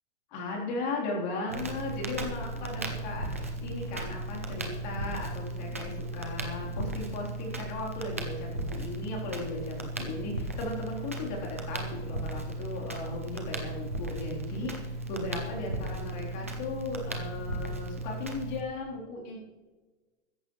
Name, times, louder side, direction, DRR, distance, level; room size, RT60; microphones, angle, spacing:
voice 1, 0.3-19.4, left 2 dB, 35° left, -1 dB, 3.9 m, -37 dB
Crackle, 1.5-18.6, right 2 dB, 15° right, 0.3 m, -36 dB
16.0 x 14.0 x 3.2 m, 1.2 s
hypercardioid pair, 170°, 37 cm